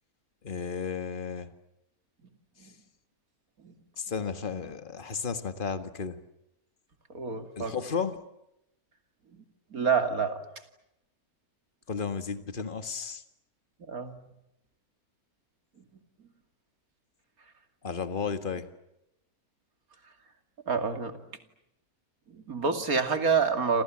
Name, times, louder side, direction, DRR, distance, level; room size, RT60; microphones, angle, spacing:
voice 1, 0.4-1.5 4.0-6.2 7.6-8.2 11.9-13.2 17.8-18.7, left 5 dB, 35° left, 9 dB, 1.8 m, -33 dB
voice 2, 7.1-7.8 9.4-9.5 9.7-10.4 13.9-14.2 20.7-21.2 22.3-23.8, right 5 dB, 70° right, 7 dB, 3.0 m, -28 dB
29.0 x 27.0 x 7.5 m, 0.84 s
omnidirectional pair, 1.6 m